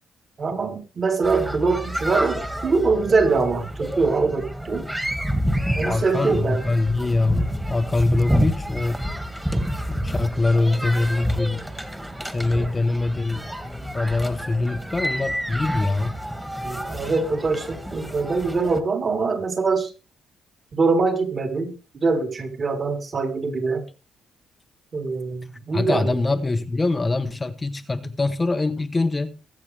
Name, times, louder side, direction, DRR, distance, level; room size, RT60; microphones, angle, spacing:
voice 1, 0.4-4.9 5.8-6.6 12.5-12.7 16.6-19.9 20.7-23.8 24.9-26.1, right 4 dB, 40° right, 3.6 m, -23 dB
sound 1, 1.2-18.8, equal, 5° right, 1.9 m, -29 dB
voice 2, 5.8-9.0 9.9-11.6 12.2-16.2 25.7-29.4, left 2 dB, 20° left, 0.9 m, -24 dB
22.5 x 7.7 x 3.4 m
cardioid pair, 90°, 0 cm